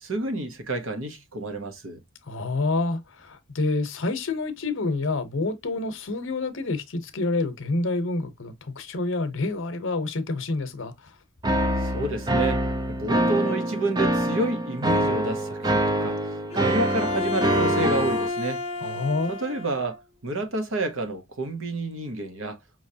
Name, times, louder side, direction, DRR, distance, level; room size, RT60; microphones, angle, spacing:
voice 1, 0.0-2.0 11.8-18.6 19.3-22.6, right 2 dB, 65° right, 1.0 m, -30 dB
voice 2, 2.3-11.1 18.8-19.4, left 3 dB, 60° left, 0.9 m, -28 dB
sound 1, 11.4-18.3, right 1 dB, 20° right, 0.5 m, -25 dB
Bowed string instrument, 16.5-19.9, left 4 dB, 30° left, 0.8 m, -30 dB
5.4 x 3.1 x 2.7 m
head